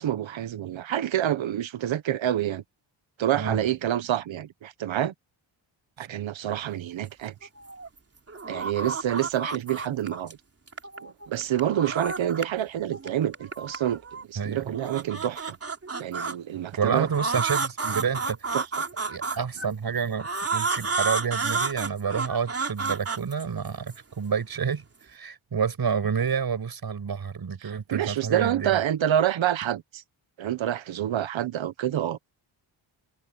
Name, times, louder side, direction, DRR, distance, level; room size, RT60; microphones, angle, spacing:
voice 1, 0.0-2.6 3.2-5.1 6.0-7.5 8.5-10.4 11.0-14.0 14.3-15.6 16.0-17.1 18.5-18.6 27.6-30.0 30.4-32.2, right 11 dB, 80° right, 1.2 m, -27 dB
sound 1, 7.4-8.0 8.3-10.3 10.7-12.6 12.9-14.2 14.7-16.3 17.1-19.7 20.2-24.0, right 4 dB, 30° right, 3.4 m, -31 dB
voice 2, 14.4-14.7 16.8-18.4 19.1-24.8 25.1-28.8, right 6 dB, 50° right, 5.5 m, -29 dB
cardioid pair, 105°, 46 cm